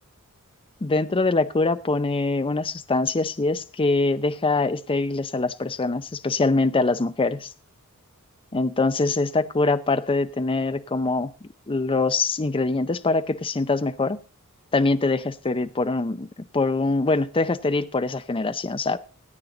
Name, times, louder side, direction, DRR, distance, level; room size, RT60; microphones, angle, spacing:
voice 1, 0.8-7.5 8.5-14.2 14.7-16.3 16.5-19.0, left 3 dB, 25° left, 13 dB, 0.5 m, -23 dB
17.0 x 9.3 x 3.8 m, 0.34 s
head